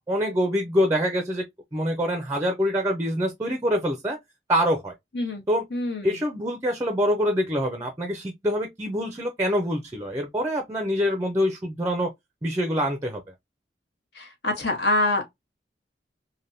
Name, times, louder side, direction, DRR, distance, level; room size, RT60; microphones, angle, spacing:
voice 1, 0.1-1.4 1.7-4.2 4.5-4.9 5.5-5.6 6.0-12.1 12.4-13.2, equal, 15° right, 0.4 m, -25 dB
voice 2, 5.7-6.2 14.1-15.3, left 2 dB, 75° left, 1.0 m, -25 dB
3.3 x 2.1 x 2.5 m
head